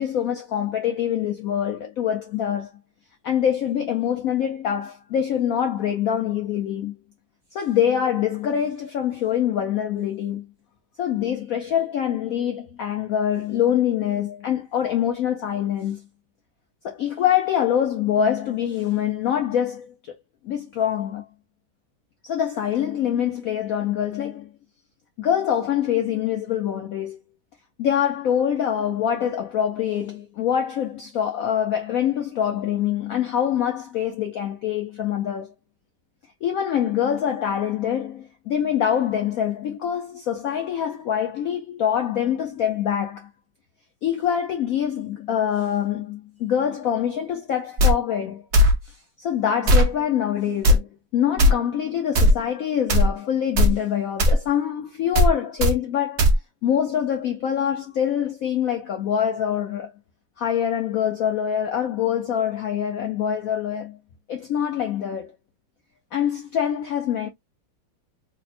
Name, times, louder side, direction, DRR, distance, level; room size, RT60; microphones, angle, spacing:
voice 1, 0.0-2.7 3.2-6.9 7.5-10.5 11.0-16.0 16.8-20.1 20.4-21.2 22.2-24.5 25.2-27.2 27.8-35.5 36.4-43.3 44.0-48.4 48.8-50.9 51.1-56.3 56.6-59.9 60.4-64.0 64.3-65.3 66.1-67.3, left 9 dB, 80° left, 0.7 m, -24 dB
sound 1, 47.8-47.9 48.5-48.7 49.7-49.9 50.6-50.8 51.4-51.5 52.1-52.3 52.9-53.1 53.6-53.7 54.2-54.4 55.1-55.3 55.6-55.7 56.2-56.3, left 1 dB, 60° right, 0.7 m, -15 dB
3.4 x 2.1 x 4.1 m
omnidirectional pair, 2.1 m